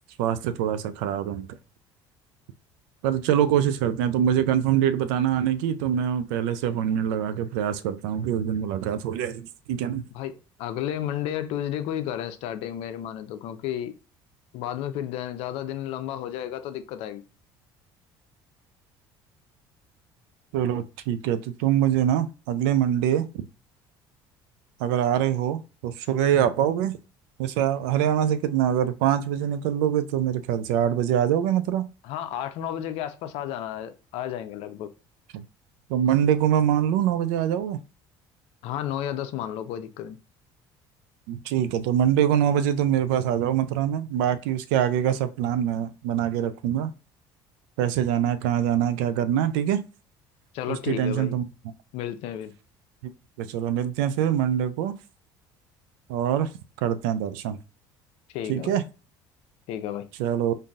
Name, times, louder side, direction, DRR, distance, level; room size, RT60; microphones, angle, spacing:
voice 1, 0.2-1.6 3.0-10.0 20.5-23.3 24.8-26.9 27.4-31.9 35.3-35.4 35.9-37.8 41.3-46.9 47.8-49.8 50.7-51.4 53.4-54.9 56.1-56.5 56.8-57.6 58.5-58.8 60.2-60.5, right 10 dB, 85° right, 0.4 m, -24 dB
voice 2, 10.1-13.9 14.5-17.2 32.0-34.9 38.6-40.2 50.5-51.4 51.9-52.5 58.3-58.8 59.7-60.1, left 11 dB, 75° left, 0.5 m, -32 dB
3.8 x 2.6 x 2.3 m
supercardioid pair, 90°, 11 cm